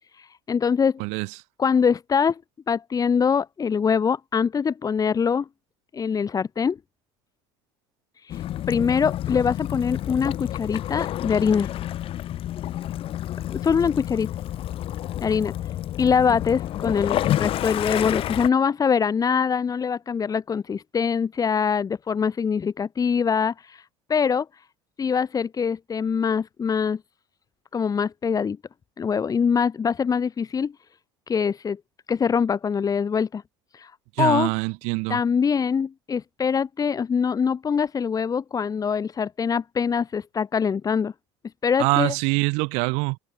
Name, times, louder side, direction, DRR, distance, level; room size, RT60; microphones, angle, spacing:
voice 1, 0.0-1.0 1.6-2.4 2.7-5.5 5.9-6.8 8.1-11.7 13.5-14.3 15.2-24.7 25.0-27.0 27.7-28.6 29.0-30.9 31.3-31.8 32.1-33.4 33.7-34.5 35.1-41.1 41.4-42.1, left 6 dB, 30° left, 6.2 m, -24 dB
Waves surf / Splash splatter / Trickle dribble, 8.3-18.5, left 12 dB, 55° left, 3.8 m, -29 dB
voice 2, 34.2-35.2 41.8-43.2, right 31 dB, 75° right, 5.4 m, -24 dB
supercardioid pair, 90°, 12 cm